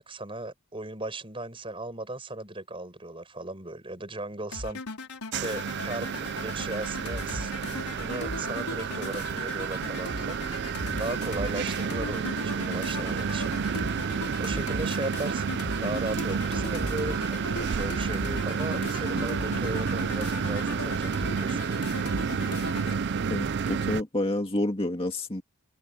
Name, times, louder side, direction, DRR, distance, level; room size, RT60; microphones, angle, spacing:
voice 1, 0.0-4.8 5.4-10.4 10.9-13.6 14.4-21.8, right 2 dB, 25° right, 5.3 m, -37 dB
sound 1, 4.5-23.0, left 2 dB, 90° left, 4.4 m, -38 dB
sound 2, 5.3-24.0, right 6 dB, 50° right, 0.4 m, -30 dB
voice 2, 23.3-25.4, left 1 dB, 25° left, 2.1 m, -29 dB
head